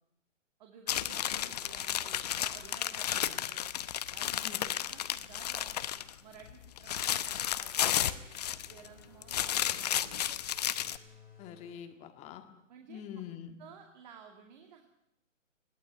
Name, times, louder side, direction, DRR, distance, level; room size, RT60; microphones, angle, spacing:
voice 1, 0.6-3.7 4.1-5.9 6.2-8.2 8.5-10.4 12.7-13.0 13.6-14.9, right 7 dB, 35° right, 3 dB, 2.4 m, -54 dB
sound 1, 0.9-6.1 6.5-8.9 9.2-11.0, left 11 dB, 30° left, 0.8 m, -33 dB
sound 2, 8.0-11.7, left 3 dB, 5° right, 6.3 m, -59 dB
voice 2, 11.4-12.4 12.9-13.6, left 9 dB, 15° left, 7 dB, 1.8 m, -45 dB
21.0 x 17.5 x 9.4 m, 0.80 s
figure-of-eight pair, 140°, 38 cm